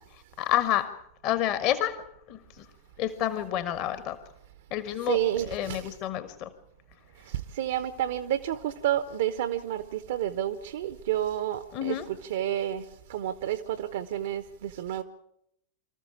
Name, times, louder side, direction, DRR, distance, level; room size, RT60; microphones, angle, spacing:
voice 1, 0.4-1.0 1.2-2.0 2.3-2.6 3.0-4.2 4.7-5.2 5.5-6.5 11.7-12.1, left 12 dB, 40° left, 1.4 m, -29 dB
voice 2, 5.1-5.8 7.6-12.8 13.1-15.0, right 12 dB, 55° right, 0.8 m, -30 dB
25.5 x 14.0 x 8.6 m
figure-of-eight pair, 90°, 0 cm